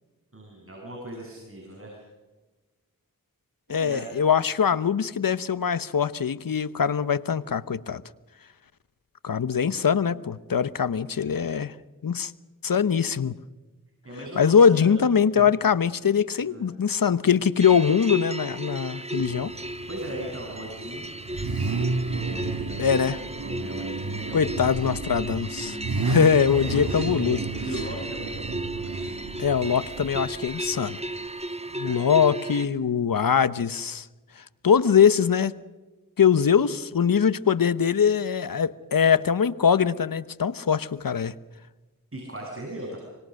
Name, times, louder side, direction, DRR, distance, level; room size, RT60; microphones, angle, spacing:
voice 1, 0.3-2.0 3.7-4.1 14.0-15.0 15.4-15.5 16.4-16.7 19.9-21.4 22.1-24.8 26.6-29.2 31.6-32.0 42.1-43.0, right 1 dB, 40° right, 7.8 m, -38 dB
voice 2, 3.7-8.0 9.2-11.7 12.0-12.3 12.6-13.3 14.4-19.5 22.8-23.2 24.3-25.8 26.0-27.4 29.4-31.0 31.8-34.1 34.6-35.6 36.2-41.3, left 7 dB, 70° left, 1.0 m, -22 dB
sound 1, 17.6-32.7, right 2 dB, 20° right, 1.5 m, -35 dB
Car / Idling / Accelerating revving vroom, 19.2-31.3, right 3 dB, 85° right, 2.1 m, -32 dB
25.5 x 24.0 x 6.5 m
cardioid pair, 40°, 35 cm